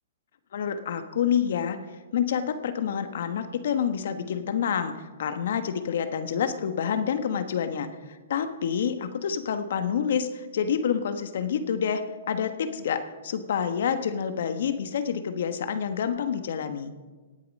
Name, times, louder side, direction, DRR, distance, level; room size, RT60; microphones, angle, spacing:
voice 1, 0.5-1.8 2.1-7.9 8.3-16.9, left 7 dB, 65° left, 9 dB, 1.3 m, -28 dB
18.5 x 8.4 x 5.4 m, 1.3 s
hypercardioid pair, 145°, 0 cm